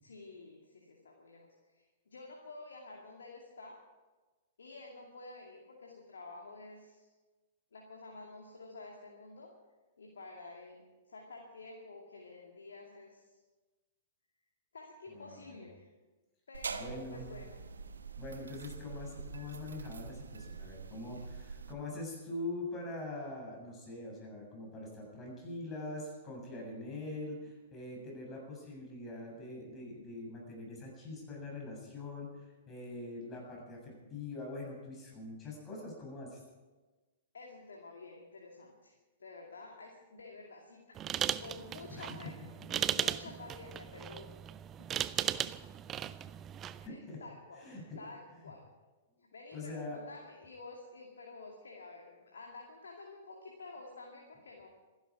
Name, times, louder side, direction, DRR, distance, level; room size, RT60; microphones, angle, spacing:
voice 1, 0.0-3.8 4.6-7.1 7.7-9.5 10.0-13.4 14.7-15.9 16.5-17.6 21.2-21.3 37.3-41.0 41.4-42.4 42.7-44.3 44.8-45.5 46.8-47.7 48.0-48.6 49.2-54.7, left 3 dB, 70° left, 0 dB, 2.4 m, -50 dB
voice 2, 15.1-15.7 16.7-17.3 18.2-36.4 42.0-42.1 46.8-47.2 47.6-48.0 48.4-48.5 49.5-50.0, left 2 dB, 20° left, -1 dB, 7.3 m, -43 dB
sound 1, 16.5-21.7, right 5 dB, 70° right, 1.3 m, -45 dB
sound 2, 41.0-46.9, right 10 dB, 25° right, 0.5 m, -37 dB
26.0 x 11.5 x 4.9 m, 1.2 s
figure-of-eight pair, 105°, 0 cm